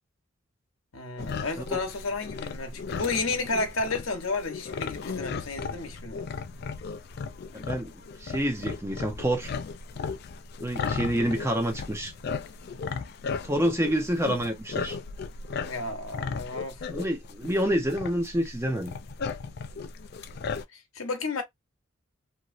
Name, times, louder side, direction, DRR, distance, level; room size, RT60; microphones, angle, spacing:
voice 1, 0.9-6.2 15.6-16.8 20.7-21.4, left 3 dB, 85° left, 0.9 m, -32 dB
sound 1, 1.2-20.6, left 5 dB, 50° left, 0.3 m, -36 dB
voice 2, 7.5-7.9 8.2-9.5 10.6-12.1 13.4-15.0 16.9-18.9, equal, 15° right, 0.7 m, -28 dB
3.0 x 2.6 x 2.5 m
head